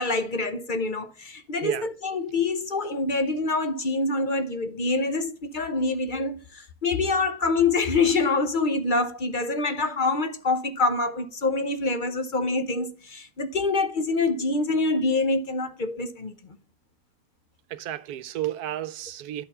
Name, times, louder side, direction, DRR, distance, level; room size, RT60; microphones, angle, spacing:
voice 1, 0.0-16.3, left 3 dB, 40° left, 0.7 m, -26 dB
voice 2, 17.7-19.4, right 12 dB, 80° right, 1.1 m, -32 dB
11.0 x 4.5 x 5.5 m
omnidirectional pair, 1.6 m